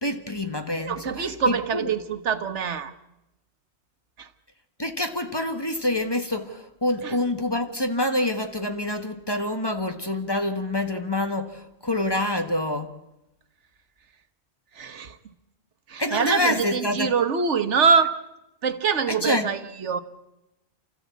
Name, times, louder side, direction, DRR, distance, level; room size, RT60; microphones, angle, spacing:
voice 1, 0.0-1.9 4.8-12.9 16.0-17.1 19.1-19.5, left 1 dB, 20° left, 6 dB, 1.5 m, -27 dB
voice 2, 0.8-2.9 4.2-4.3 7.0-7.2 14.7-15.2 15.9-18.2 18.6-20.0, right 6 dB, 80° right, 10 dB, 1.4 m, -24 dB
29.5 x 14.0 x 8.3 m, 0.91 s
omnidirectional pair, 1.2 m